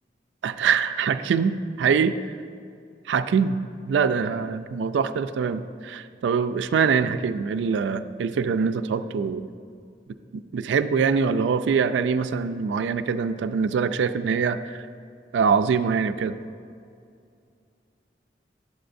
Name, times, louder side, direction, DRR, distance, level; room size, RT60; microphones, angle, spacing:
voice 1, 0.4-2.2 3.1-3.6 3.9-9.5 10.3-14.9 15.3-16.3, right 6 dB, 85° right, 10 dB, 0.3 m, -24 dB
11.0 x 7.8 x 2.6 m, 2.4 s
head